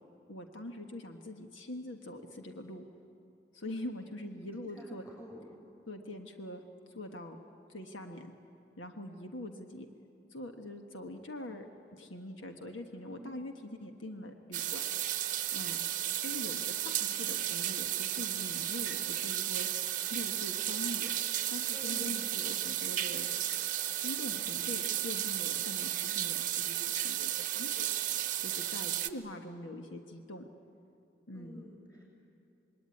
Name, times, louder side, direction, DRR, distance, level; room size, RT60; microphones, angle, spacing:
voice 1, 0.3-2.9 3.5-5.1 5.9-6.6 6.9-7.4 7.7-8.3 8.8-9.9 10.3-11.6 11.9-14.8 15.5-15.8 16.2-19.7 20.1-21.1 21.5-23.3 24.0-27.9 28.4-30.4 31.3-31.6, left 1 dB, 90° left, 4 dB, 1.5 m, -43 dB
voice 2, 4.6-5.5 13.0-13.4 21.7-22.2 31.3-32.1, equal, 20° left, -2 dB, 7.3 m, -49 dB
sound 1, 14.5-29.1, right 12 dB, 40° right, 0.8 m, -34 dB
26.5 x 21.5 x 9.8 m, 2.8 s
head